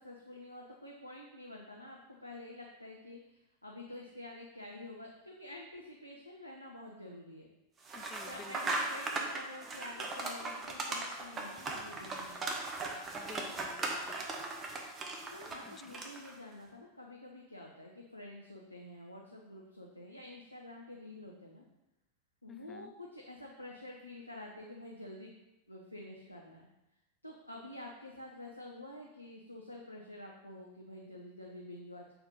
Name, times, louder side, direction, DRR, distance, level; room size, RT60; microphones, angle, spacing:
voice 1, 0.0-7.5 8.2-12.5 15.3-21.6 22.4-25.3 25.7-26.7 27.2-32.2, left 1 dB, 85° left, -1 dB, 0.7 m, -49 dB
sound 1, 7.8-16.3, right 2 dB, 20° right, 1.0 m, -38 dB
voice 2, 7.9-8.5 13.2-14.2 15.6-15.9 22.5-22.9, left 6 dB, 20° left, 11 dB, 0.3 m, -52 dB
6.8 x 4.4 x 3.8 m, 0.97 s
figure-of-eight pair, 90°, 0 cm